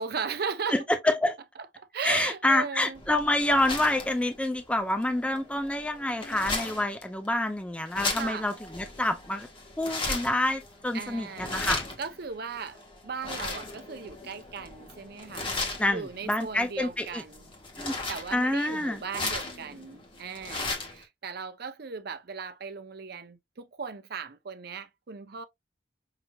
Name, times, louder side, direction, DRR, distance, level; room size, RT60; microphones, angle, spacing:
voice 1, 0.0-0.8 1.8-3.0 8.1-8.5 10.9-11.6 12.0-15.6 15.9-17.4 18.1-25.4, right 5 dB, 55° right, 0.6 m, -37 dB
voice 2, 0.7-1.4 2.0-9.5 9.8-11.8 15.8-16.0 16.3-17.2 17.8-18.0 18.3-19.0, left 1 dB, 5° left, 0.4 m, -27 dB
sound 1, 2.9-21.0, left 3 dB, 25° left, 1.3 m, -37 dB
5.7 x 2.8 x 2.3 m
head